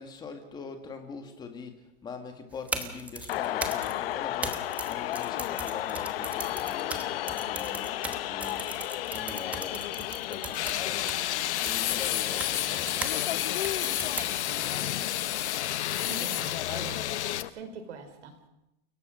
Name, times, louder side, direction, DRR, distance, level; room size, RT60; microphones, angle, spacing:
voice 1, 0.0-11.2 11.6-15.3, left 5 dB, 10° left, 1.9 m, -43 dB
sound 1, 2.5-13.2 13.6-14.6, right 3 dB, 5° right, 1.0 m, -38 dB
sound 2, 3.3-17.5, left 14 dB, 55° left, 0.9 m, -34 dB
sound 3, 10.5-17.4, left 13 dB, 80° left, 1.3 m, -31 dB
voice 2, 16.0-17.2 17.5-18.4, right 4 dB, 80° right, 4.7 m, -42 dB
29.5 x 18.0 x 6.4 m
supercardioid pair, 180°, 34 cm